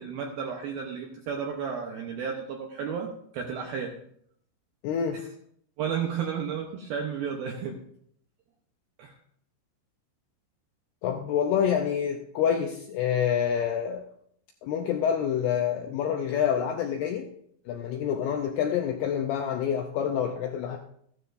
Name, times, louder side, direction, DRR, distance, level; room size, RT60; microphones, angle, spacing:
voice 1, 0.0-4.0 5.8-7.8 9.0-9.2, right 7 dB, 75° right, 1 dB, 2.2 m, -33 dB
voice 2, 4.8-5.2 11.0-14.0 14.6-17.3 17.7-20.8, left 8 dB, 80° left, 3 dB, 2.3 m, -27 dB
15.0 x 12.5 x 2.6 m, 0.66 s
omnidirectional pair, 5.5 m